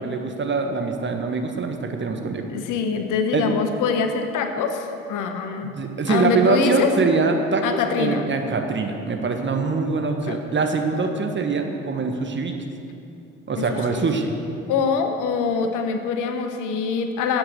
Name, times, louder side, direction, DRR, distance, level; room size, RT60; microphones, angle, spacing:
voice 1, 0.0-2.4 3.3-3.5 5.7-12.5 13.5-14.3, right 4 dB, 30° right, 4 dB, 1.4 m, -23 dB
voice 2, 2.5-5.7 6.1-6.9 7.6-8.3 10.3-10.4 13.6-14.1 14.7-17.4, left 5 dB, 55° left, 6 dB, 1.1 m, -24 dB
12.5 x 8.1 x 6.6 m, 2.8 s
figure-of-eight pair, 45°, 36 cm